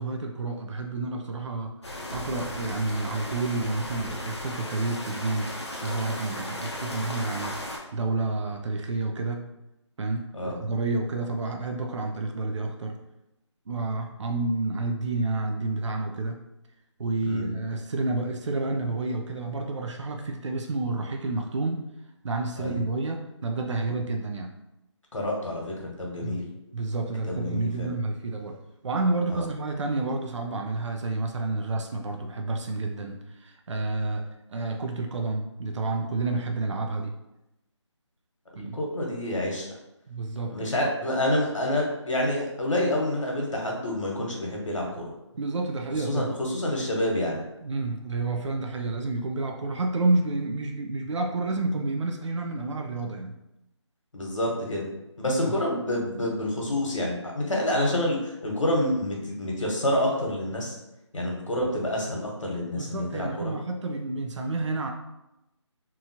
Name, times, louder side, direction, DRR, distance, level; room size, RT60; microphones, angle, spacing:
voice 1, 0.0-1.7 2.1-5.5 5.8-9.5 10.0-13.0 13.7-16.4 17.0-21.8 22.2-24.5 26.2-26.4 26.7-28.6 28.8-37.1 38.5-38.8 40.1-40.9 45.3-46.3 47.6-53.4 55.5-55.6 62.7-64.9, right 3 dB, 70° right, 3 dB, 0.4 m, -30 dB
sound 1, 1.8-7.8, left 1 dB, 65° left, 0.7 m, -36 dB
voice 2, 25.1-26.4 27.3-27.9 29.3-29.5 38.6-39.7 40.5-45.1 45.9-47.4 54.1-54.9 55.2-60.8 61.1-63.5, left 1 dB, 90° left, -1 dB, 1.1 m, -28 dB
2.9 x 2.3 x 2.7 m, 0.91 s
figure-of-eight pair, 170°, 16 cm